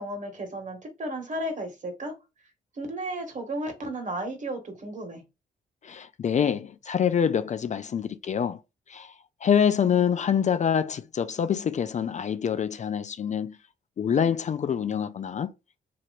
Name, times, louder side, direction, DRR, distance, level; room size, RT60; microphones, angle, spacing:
voice 1, 0.0-2.1 2.7-5.2, right 1 dB, 45° right, 1.5 m, -34 dB
voice 2, 5.8-8.6 8.9-9.1 9.4-13.6 14.0-15.5, left 8 dB, 45° left, 0.4 m, -26 dB
3.0 x 2.9 x 2.5 m
supercardioid pair, 65°, 18 cm